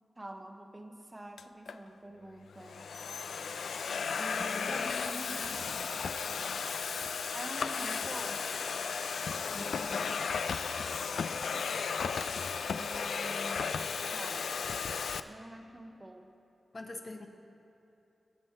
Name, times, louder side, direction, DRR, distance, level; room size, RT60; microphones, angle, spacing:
voice 1, 0.2-2.9 4.1-5.6 7.3-8.5 12.7-14.5 15.2-16.3, right 1 dB, 20° right, 5 dB, 0.8 m, -47 dB
Domestic sounds home sounds, 1.4-1.8 2.5-15.2, left 6 dB, 85° left, 0.4 m, -35 dB
voice 2, 4.4-5.7 9.5-10.1 16.7-17.3, left 2 dB, 40° left, 3 dB, 1.1 m, -44 dB
sound 1, 6.7-10.7, right 2 dB, 85° right, 2.7 m, -58 dB
19.5 x 7.7 x 4.5 m, 2.8 s
wide cardioid pair, 95°, 0 cm